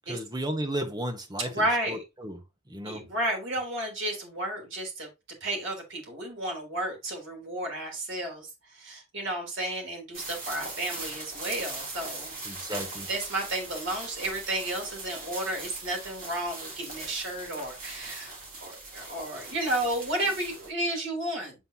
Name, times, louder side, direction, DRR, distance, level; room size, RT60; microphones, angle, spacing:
voice 1, 0.1-2.4 2.7-3.0 12.4-13.1, right 1 dB, 20° right, 1.2 m, -34 dB
voice 2, 1.4-2.0 2.8-5.1 5.4-12.3 12.7-12.8 13.1-21.6, right 1 dB, 60° right, 3.6 m, -32 dB
sound 1, 10.1-20.7, right 3 dB, 40° right, 3.1 m, -40 dB
7.8 x 5.7 x 2.9 m
head